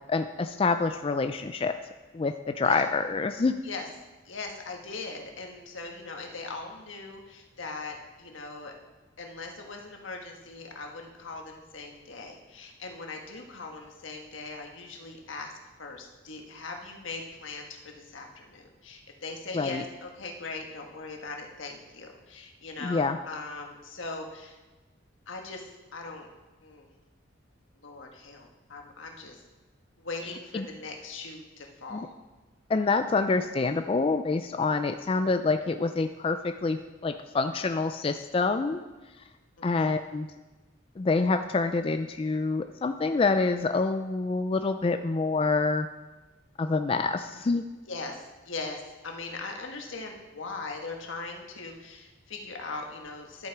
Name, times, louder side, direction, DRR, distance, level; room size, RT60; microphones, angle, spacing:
voice 1, 0.1-1.7 2.1-3.6 19.5-19.8 22.8-23.2 30.5-30.7 31.9-32.1 32.7-38.8 39.6-40.3 41.0-45.9 46.6-47.6, left 3 dB, 30° left, 8 dB, 0.3 m, -27 dB
voice 2, 4.2-8.7 9.2-15.5 15.8-24.6 25.3-26.3 26.6-26.9 27.8-29.4 30.0-32.1 39.6-39.9 47.9-53.5, left 3 dB, 80° left, 2 dB, 1.5 m, -40 dB
11.0 x 7.8 x 4.7 m, 1.2 s
head